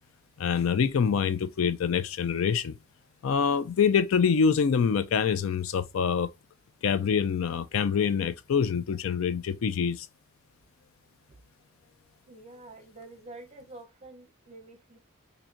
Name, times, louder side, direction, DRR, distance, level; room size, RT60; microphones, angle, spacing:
voice 1, 0.4-2.8 3.2-6.3 6.8-10.1, left 6 dB, 70° left, 0.4 m, -25 dB
voice 2, 12.3-15.0, right 2 dB, 30° right, 0.8 m, -48 dB
4.2 x 2.6 x 2.5 m
head